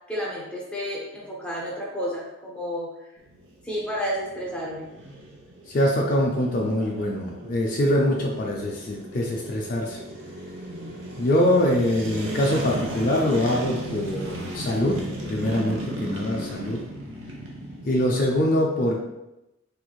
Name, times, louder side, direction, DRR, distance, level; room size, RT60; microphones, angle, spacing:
voice 1, 0.1-3.1 3.6-4.9, equal, 5° left, -5 dB, 0.6 m, -31 dB
sound 1, 3.2-18.4, right 1 dB, 70° right, 0.7 m, -36 dB
voice 2, 5.7-10.0 11.2-15.0 15.3-16.8 17.9-19.0, left 1 dB, 45° left, -1 dB, 0.4 m, -23 dB
3.4 x 3.0 x 2.3 m, 0.94 s
head